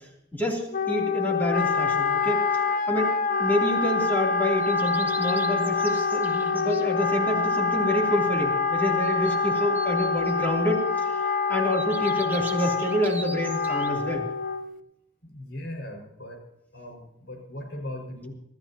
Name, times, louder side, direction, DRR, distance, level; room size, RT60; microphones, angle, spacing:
voice 1, 0.0-2.4 2.9-14.2, left 1 dB, 10° left, -1 dB, 3.1 m, -28 dB
Wind instrument woodwind instrument, 0.7-14.8, left 4 dB, 45° left, 0.7 m, -26 dB
sound 1, 4.6-6.9 9.0-10.8 11.7-13.9, right 2 dB, 10° right, 1.5 m, -42 dB
voice 2, 15.2-16.4 16.7-18.3, left 1 dB, 65° left, 2 dB, 5.4 m, -38 dB
25.0 x 14.5 x 2.9 m, 0.79 s
head